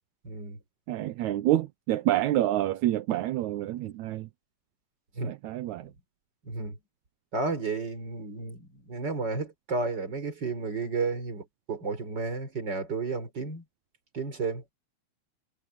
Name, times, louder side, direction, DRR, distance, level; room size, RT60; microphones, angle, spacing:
voice 1, 0.2-0.6 5.1-5.3 6.4-6.8 7.3-13.6 14.1-14.6, right 3 dB, 35° right, 4.6 m, -32 dB
voice 2, 0.9-4.3 5.3-5.9, right 14 dB, 80° right, 2.1 m, -27 dB
omnidirectional pair, 3.4 m